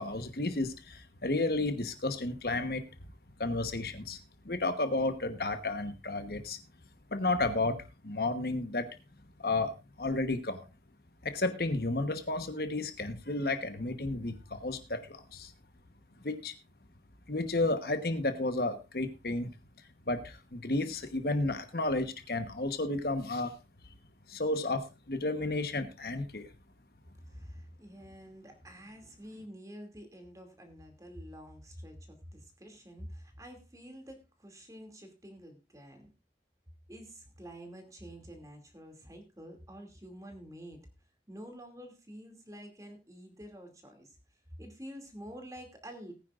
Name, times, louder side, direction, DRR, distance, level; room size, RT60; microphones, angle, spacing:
voice 1, 0.0-2.8 3.4-4.2 4.4-6.6 7.1-8.9 9.4-9.7 10.0-10.7 11.2-15.5 16.2-16.5 17.3-19.5 20.1-23.5 24.3-26.5, left 2 dB, 55° left, 8 dB, 1.1 m, -32 dB
voice 2, 27.2-36.1 36.9-40.8 41.3-44.2 44.6-46.1, equal, 20° right, 5 dB, 2.5 m, -48 dB
19.0 x 9.8 x 2.5 m, 0.27 s
head